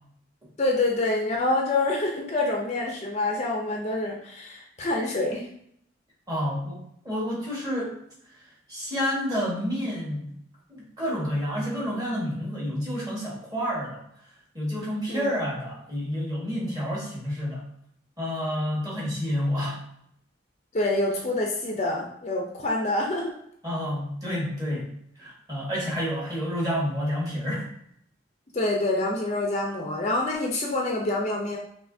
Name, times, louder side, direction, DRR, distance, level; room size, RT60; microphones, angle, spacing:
voice 1, 0.6-5.5 15.1-15.3 20.7-23.3 28.5-31.6, left 2 dB, 35° left, 0 dB, 0.5 m, -26 dB
voice 2, 6.3-8.0 8.4-10.3 10.7-14.0 14.5-17.6 18.2-19.8 23.6-27.6, equal, 20° right, -5 dB, 1.4 m, -29 dB
5.8 x 2.7 x 2.6 m, 0.70 s
head